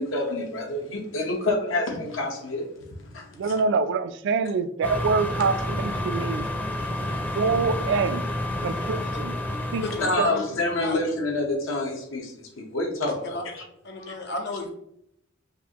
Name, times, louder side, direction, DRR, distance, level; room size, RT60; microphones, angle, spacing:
voice 1, 0.0-2.7 3.0-3.5 6.8-7.4 8.6-8.8 9.6-9.7 10.0-13.6 14.1-14.2, left 2 dB, 85° left, 1 dB, 0.9 m, -28 dB
voice 2, 3.4-6.5 7.4-8.2 8.6-9.8 10.2-10.3, right 4 dB, 65° right, 12 dB, 0.3 m, -25 dB
sound 1, 4.8-10.2, left 1 dB, 10° left, 0.5 m, -29 dB
voice 3, 9.8-10.4 10.8-11.0 13.3-13.4 13.8-14.7, left 2 dB, 60° left, 3 dB, 0.8 m, -32 dB
5.1 x 2.5 x 2.9 m, 0.74 s
head